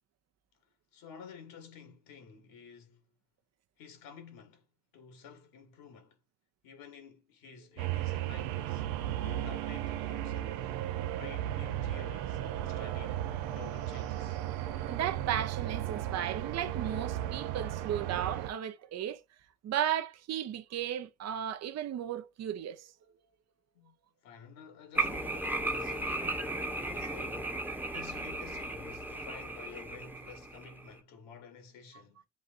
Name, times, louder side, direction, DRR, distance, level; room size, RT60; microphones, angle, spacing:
voice 1, 0.9-3.0 3.8-4.7 4.9-6.2 6.6-8.9 9.2-14.4 23.7-23.9 24.2-32.3, left 6 dB, 75° left, 1.5 m, -51 dB
sound 1, 7.8-18.5, right 12 dB, 85° right, 0.6 m, -35 dB
voice 2, 14.9-19.2 19.6-22.9 27.0-27.1 27.8-28.0, right 10 dB, 50° right, 0.7 m, -35 dB
sound 2, 24.9-31.0, right 2 dB, 5° right, 0.9 m, -35 dB
7.3 x 2.6 x 2.5 m
supercardioid pair, 80°, 34 cm